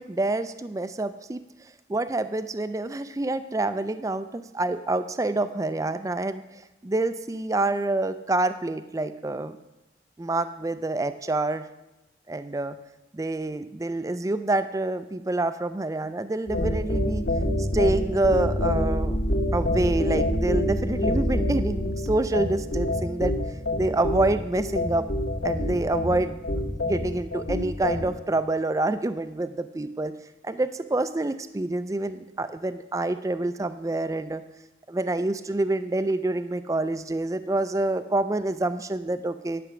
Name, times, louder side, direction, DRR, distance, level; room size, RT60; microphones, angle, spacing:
voice 1, 0.0-1.4 1.9-9.6 10.2-11.6 12.3-12.8 13.1-17.3 17.6-19.2 19.5-23.3 23.8-25.1 25.4-30.1 30.4-34.4 34.9-39.6, right 2 dB, 15° right, 11 dB, 0.3 m, -27 dB
sound 1, 16.5-28.1, left 1 dB, 70° left, 2.1 m, -26 dB
11.0 x 6.8 x 6.1 m, 1.0 s
head